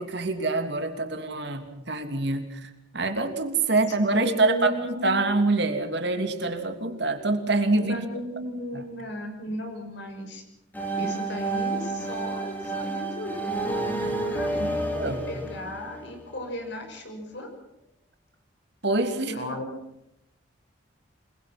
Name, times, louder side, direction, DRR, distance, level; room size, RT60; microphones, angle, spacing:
voice 1, 0.0-4.7 5.0-7.9 8.7-8.8 14.0-14.2 14.6-14.7 14.9-15.3 18.8-19.3, right 3 dB, 55° right, 6 dB, 2.9 m, -25 dB
voice 2, 4.1-5.2 7.8-10.4 10.9-13.6 14.1-17.5 19.3-19.7, left 1 dB, 60° left, 4 dB, 6.0 m, -35 dB
sound 1, 10.7-16.5, right 2 dB, 10° left, 3.7 m, -30 dB
28.0 x 22.0 x 6.1 m, 0.85 s
head